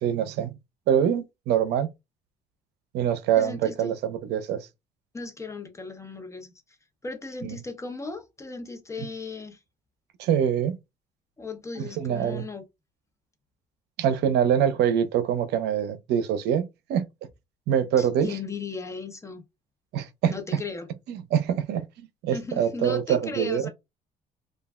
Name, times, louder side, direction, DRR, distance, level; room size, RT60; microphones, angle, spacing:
voice 1, 0.0-0.5 0.9-1.9 2.9-4.7 7.4-7.6 10.2-10.8 11.8-12.4 14.0-17.1 17.7-18.4 19.9-20.3 21.1-23.7, right 9 dB, 80° right, 0.6 m, -25 dB
voice 2, 3.4-3.9 5.1-6.5 7.0-9.6 11.4-12.6 18.0-19.4 20.3-20.9 22.3-23.7, left 3 dB, 15° left, 0.8 m, -36 dB
3.2 x 2.3 x 2.3 m
cardioid pair, 110°, 17 cm